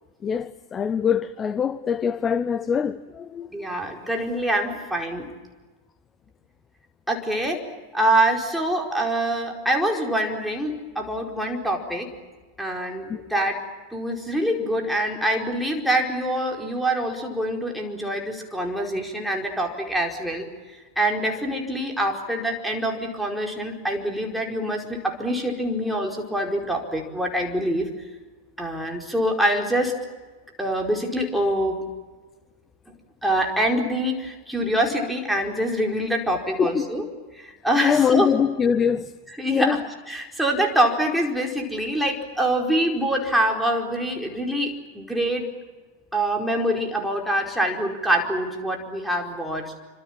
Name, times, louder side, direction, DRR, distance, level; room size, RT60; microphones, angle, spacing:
voice 1, 0.2-3.5 13.1-13.2 36.6-36.9 37.8-39.1 39.5-39.8, left 7 dB, 20° left, 0.8 m, -23 dB
voice 2, 3.5-5.3 7.1-7.6 7.9-12.1 12.6-13.6 13.9-20.5 21.0-27.9 28.6-30.0 30.6-31.8 33.2-37.0 37.3-38.3 39.3-39.8 40.1-45.5 46.1-49.7, right 1 dB, ahead, 4.7 m, -25 dB
28.0 x 25.5 x 7.5 m
figure-of-eight pair, 90°, 0 cm